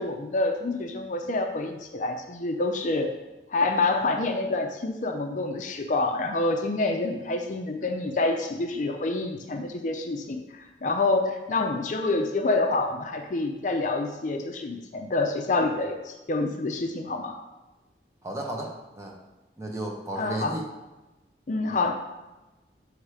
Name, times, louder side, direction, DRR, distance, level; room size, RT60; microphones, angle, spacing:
voice 1, 0.0-3.1 3.5-17.4 20.2-20.6 21.5-21.9, left 2 dB, 45° left, 4 dB, 0.5 m, -27 dB
voice 2, 18.2-19.1 19.6-20.6 21.7-21.8, right 1 dB, 15° right, 0 dB, 0.8 m, -34 dB
6.3 x 3.2 x 4.8 m, 1.1 s
head